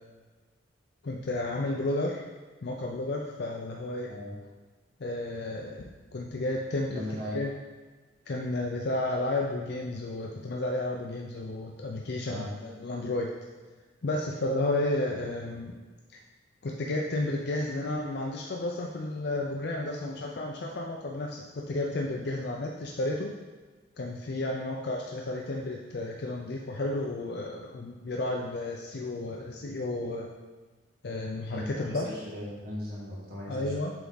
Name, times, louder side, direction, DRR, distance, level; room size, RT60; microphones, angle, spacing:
voice 1, 1.0-2.3 2.6-4.1 5.0-7.0 7.3-7.5 8.3-13.3 14.0-15.8 16.6-23.3 24.0-30.3 31.0-32.1 33.5-33.9, left 2 dB, 60° left, 0 dB, 0.5 m, -32 dB
voice 2, 6.9-7.4 12.3-12.5 31.5-33.7, left 1 dB, 50° right, -5 dB, 1.8 m, -37 dB
8.0 x 3.5 x 3.9 m, 1.3 s
head